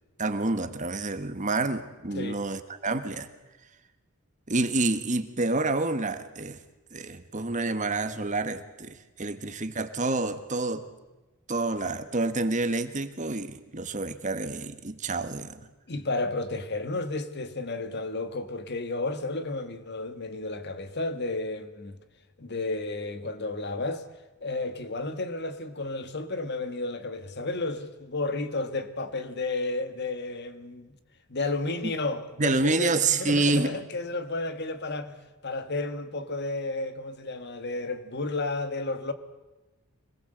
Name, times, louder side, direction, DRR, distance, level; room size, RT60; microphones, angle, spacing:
voice 1, 0.2-3.3 4.5-6.6 6.9-10.9 11.5-15.7 31.8-31.9 32.4-33.7, right 3 dB, 35° right, 1.4 m, -28 dB
voice 2, 15.9-22.0 22.4-24.0 24.4-30.9 31.3-32.9 33.2-35.2 35.4-39.1, left 2 dB, 50° left, 1.8 m, -32 dB
25.5 x 20.0 x 8.0 m
head